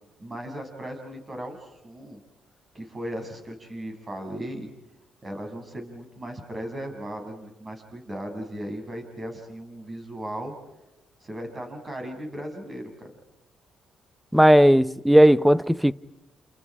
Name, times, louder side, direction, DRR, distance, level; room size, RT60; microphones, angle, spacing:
voice 1, 0.2-2.2 2.7-4.7 5.2-10.5 11.2-13.1, right 1 dB, 25° right, 7.6 m, -37 dB
voice 2, 14.3-15.9, equal, 5° right, 0.9 m, -16 dB
30.0 x 29.0 x 4.9 m
cardioid pair, 90°, 0 cm